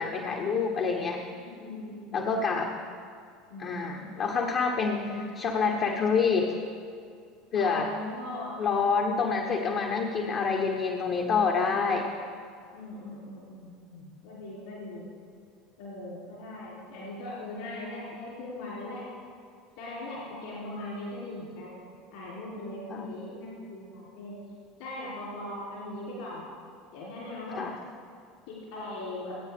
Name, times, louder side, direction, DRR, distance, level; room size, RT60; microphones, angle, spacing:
voice 1, 0.0-1.2 2.1-2.7 3.6-5.1 5.4-6.5 7.5-7.9 8.6-12.1 22.9-23.1 27.6-27.7, left 5 dB, 45° left, 1 dB, 1.1 m, -27 dB
voice 2, 0.9-2.3 3.5-4.2 4.9-5.3 7.5-8.8 12.7-15.1 15.8-19.0 19.8-21.8 22.1-24.4 24.8-26.5 26.9-27.6 28.5-29.4, left 1 dB, 65° left, -6 dB, 3.6 m, -40 dB
19.0 x 9.1 x 3.6 m, 2.3 s
figure-of-eight pair, 70°, 0 cm